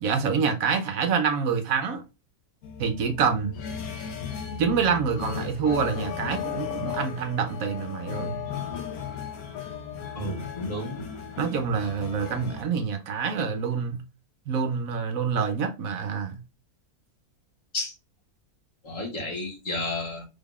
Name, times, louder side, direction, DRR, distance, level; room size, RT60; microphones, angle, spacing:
voice 1, 0.0-2.0 2.8-3.5 4.6-8.4 11.4-14.0 14.5-16.4, right 6 dB, 70° right, 1.1 m, -26 dB
sound 1, 2.6-12.6, left 7 dB, 70° left, 1.2 m, -36 dB
voice 2, 10.1-11.1 17.7-17.9 18.8-20.2, left 2 dB, 55° left, 1.8 m, -32 dB
3.6 x 3.5 x 2.3 m
omnidirectional pair, 1.6 m